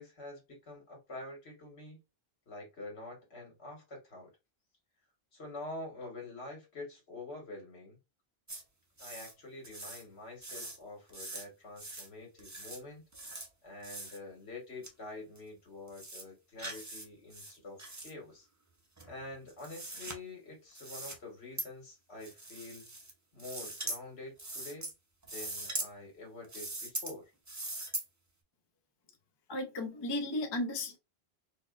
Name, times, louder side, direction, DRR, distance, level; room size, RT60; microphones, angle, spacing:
voice 1, 0.0-2.0 2.5-4.3 5.3-8.0 9.0-13.0 13.6-18.5 19.1-22.9 23.3-24.9 25.3-27.3, left 2 dB, 80° left, 1.7 m, -47 dB
sound 1, 8.5-8.6 9.0-9.3 9.6-10.0 10.4-10.8 11.1-11.5 11.8-12.1 12.4-12.8 13.1-13.5 13.8-14.2 14.8-14.9 15.4-15.5 15.9-16.2 16.6-17.1 17.3-18.1 19.0-20.2 20.7-21.2 21.6-21.7 22.2-23.1 23.4-24.0 24.4-24.9 25.2-25.9 26.4-27.1 27.5-28.1, right 2 dB, 20° right, 0.6 m, -41 dB
voice 2, 29.5-31.0, left 1 dB, 30° left, 0.5 m, -34 dB
4.2 x 2.3 x 2.4 m
omnidirectional pair, 1.1 m